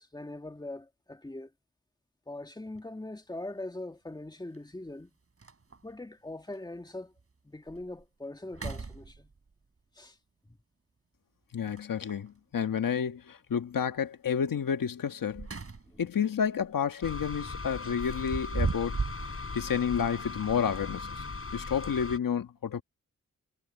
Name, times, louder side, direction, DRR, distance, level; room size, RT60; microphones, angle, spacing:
voice 1, 0.0-1.5 2.3-5.1 5.8-7.1 7.4-9.3 9.9-10.2 10.5-10.6 15.9-16.0, left 2 dB, 10° left, 1.7 m, -42 dB
sound 1, 2.7-2.8 4.5-4.6 5.0-5.1 5.4-6.0 6.5-6.6 7.2-7.3 7.7-8.0 8.4-9.5 11.6-12.3 15.0-16.1 16.5-16.7 18.0-19.3, right 4 dB, 45° right, 5.1 m, -36 dB
voice 2, 11.5-15.5 16.0-19.0 19.5-21.2 21.5-22.8, left 7 dB, 80° left, 1.5 m, -30 dB
sound 2, 17.0-22.2, left 3 dB, 40° left, 5.6 m, -39 dB
cardioid pair, 70°, 33 cm